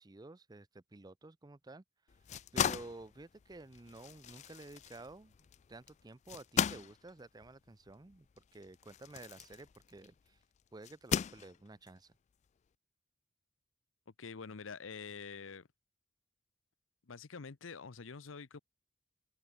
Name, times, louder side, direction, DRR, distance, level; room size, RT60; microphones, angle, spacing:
voice 1, 0.0-1.8 2.5-5.3 5.7-10.4 10.7-12.1, right 2 dB, 20° right, 0.5 m, -52 dB
sound 1, 2.1-10.2 10.8-11.9, left 8 dB, 35° left, 0.3 m, -38 dB
voice 2, 14.2-15.7 17.1-18.6, left 5 dB, 90° left, 0.8 m, -46 dB
head